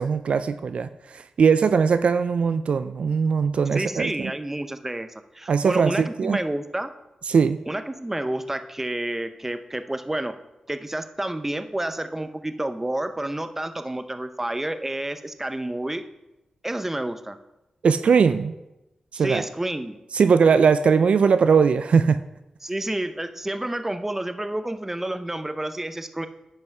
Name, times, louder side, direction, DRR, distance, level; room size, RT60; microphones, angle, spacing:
voice 1, 0.0-4.3 5.5-6.4 7.3-7.6 17.8-18.5 19.1-19.4 20.1-22.2, right 6 dB, 70° right, 11 dB, 0.4 m, -20 dB
voice 2, 3.7-6.9 7.7-10.3 10.7-16.1 16.6-17.4 19.1-20.0 22.6-26.3, right 1 dB, 15° right, 9 dB, 0.7 m, -29 dB
9.1 x 5.5 x 5.5 m, 0.96 s
cardioid pair, 75°, 2 cm